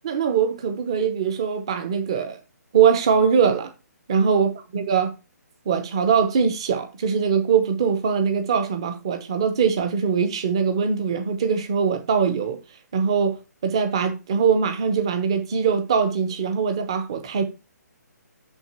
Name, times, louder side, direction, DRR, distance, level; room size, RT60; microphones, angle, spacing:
voice 1, 0.0-2.4 2.7-3.7 4.1-5.1 5.7-12.6 12.9-17.4, right 6 dB, 15° right, 0.9 m, -22 dB
6.4 x 5.7 x 5.7 m
hypercardioid pair, 180°, 9 cm